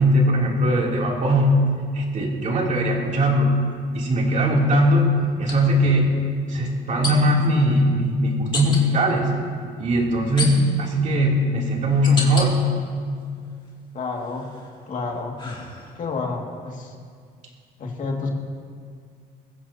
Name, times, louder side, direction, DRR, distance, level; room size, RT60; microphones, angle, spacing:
voice 1, 0.0-1.6 1.9-3.6 3.9-6.2 6.5-9.3 9.8-12.6, equal, 45° right, -2 dB, 3.0 m, -20 dB
sound 1, 2.6-2.7 5.4-5.6 7.0-7.5 8.5-8.8 10.4-10.9 11.5-12.5 13.0-13.7 14.2-16.2, left 3 dB, 30° left, 2.6 m, -31 dB
voice 2, 13.9-14.5 14.9-15.4 16.0-16.9 17.8-18.3, left 4 dB, 50° left, 0 dB, 2.2 m, -29 dB
22.0 x 15.0 x 2.9 m, 2.1 s
cardioid pair, 110°, 17 cm